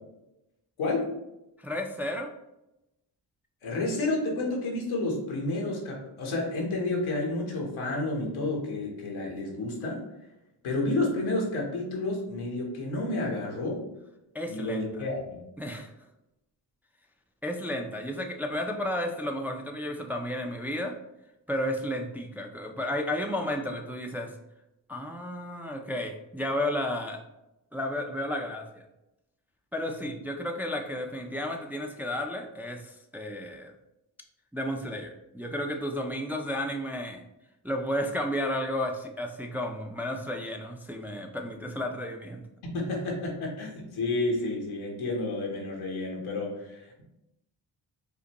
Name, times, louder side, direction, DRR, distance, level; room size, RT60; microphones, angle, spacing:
voice 1, 0.8-1.1 3.6-10.0 10.6-13.8 14.5-15.4 42.6-47.0, left 2 dB, 80° left, -1 dB, 1.1 m, -30 dB
voice 2, 1.6-2.3 14.3-14.9 15.6-15.9 17.4-20.9 21.5-24.3 24.9-27.2 27.7-28.9 29.7-33.7 34.5-37.2 37.6-42.4, left 1 dB, 5° right, 2 dB, 0.5 m, -32 dB
5.1 x 2.1 x 2.9 m, 0.90 s
supercardioid pair, 40°, 48 cm